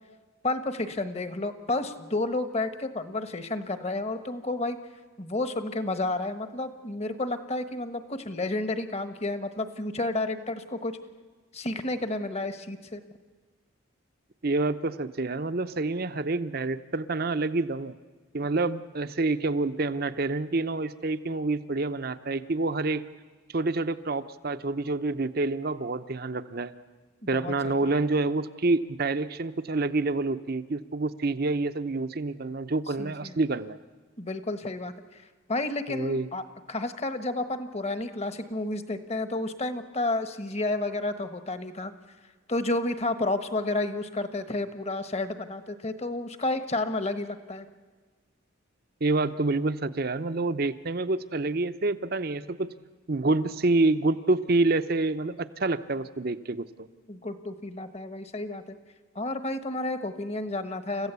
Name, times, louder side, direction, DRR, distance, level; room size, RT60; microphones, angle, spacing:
voice 1, 0.4-4.8 5.2-11.0 11.5-13.0 27.2-27.9 33.0-33.4 34.2-35.2 35.5-41.9 42.5-47.7 57.1-58.8 59.1-61.1, left 2 dB, 30° left, 10 dB, 1.2 m, -31 dB
voice 2, 14.4-18.0 18.3-23.1 23.5-26.7 27.3-33.8 35.9-36.3 49.0-52.7 53.1-56.9, right 2 dB, 50° right, 12 dB, 0.8 m, -27 dB
30.0 x 15.0 x 8.2 m, 1.4 s
head